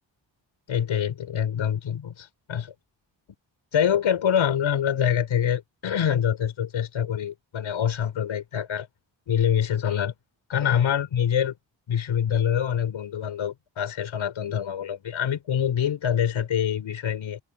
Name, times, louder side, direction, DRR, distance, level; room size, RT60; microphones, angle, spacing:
voice 1, 0.7-2.7 3.7-8.9 9.3-10.1 10.5-11.5 11.9-17.4, left 9 dB, 85° left, 4.5 m, -25 dB
wide cardioid pair, 155°, 46 cm